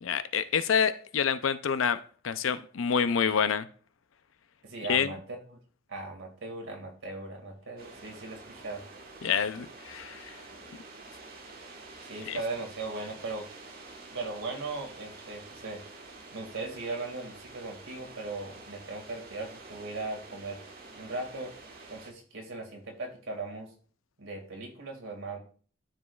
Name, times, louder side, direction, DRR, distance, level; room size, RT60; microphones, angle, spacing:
voice 1, 0.0-3.7 4.9-5.1 9.2-10.3 12.3-12.4, left 7 dB, 85° left, 0.5 m, -27 dB
voice 2, 4.6-5.6 5.9-8.8 12.1-13.5 14.1-15.8 16.3-20.6 21.0-21.5 21.9-23.7 24.2-25.4, right 3 dB, 85° right, 2.2 m, -38 dB
sound 1, 7.8-22.1, right 3 dB, 50° right, 1.4 m, -48 dB
13.0 x 5.0 x 2.4 m
head